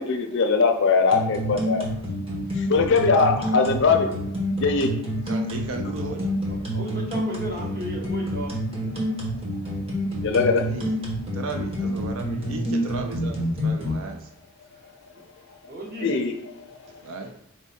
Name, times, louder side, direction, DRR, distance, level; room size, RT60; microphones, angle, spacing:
voice 1, 0.0-1.8 2.7-4.1 4.6-4.9 10.2-10.6 16.0-16.3, left 4 dB, 55° left, 5 dB, 0.5 m, -20 dB
sound 1, 1.1-13.9, equal, 25° right, 0.9 m, -28 dB
voice 2, 3.1-3.9 5.2-6.3 9.1-9.8 10.7-10.9 11.3-14.3 17.0-17.3, right 3 dB, 60° right, 4 dB, 0.4 m, -36 dB
voice 3, 6.7-8.5 15.7-16.1, right 1 dB, 45° right, -3 dB, 1.1 m, -34 dB
4.6 x 2.2 x 4.2 m, 0.71 s
head